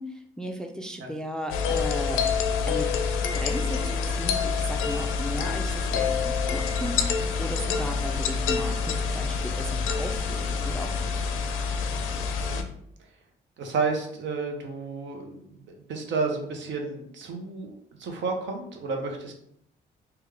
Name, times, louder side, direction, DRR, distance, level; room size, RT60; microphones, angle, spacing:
voice 1, 0.0-2.2 2.7-2.9 3.3-11.2, equal, 5° left, 4 dB, 0.3 m, -36 dB
sound 1, 1.5-12.6, left 5 dB, 90° left, 0.4 m, -27 dB
voice 2, 13.6-17.7 18.0-19.3, right 4 dB, 70° right, 3 dB, 0.7 m, -31 dB
3.3 x 2.3 x 3.3 m, 0.72 s
cardioid pair, 90°, 20 cm